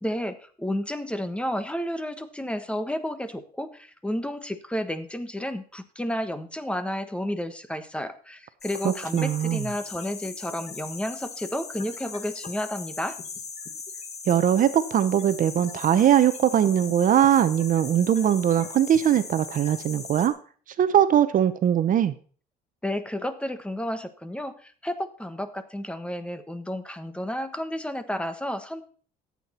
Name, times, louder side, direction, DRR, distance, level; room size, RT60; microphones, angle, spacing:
voice 1, 0.0-13.2 22.8-28.9, left 1 dB, 5° left, 10 dB, 1.2 m, -31 dB
sound 1, 8.6-20.3, left 5 dB, 40° left, 2.1 m, -39 dB
voice 2, 8.8-9.6 14.3-20.3 20.8-22.1, right 10 dB, 50° right, 12 dB, 0.8 m, -21 dB
14.5 x 8.5 x 4.3 m, 0.43 s
cardioid pair, 110°, 17 cm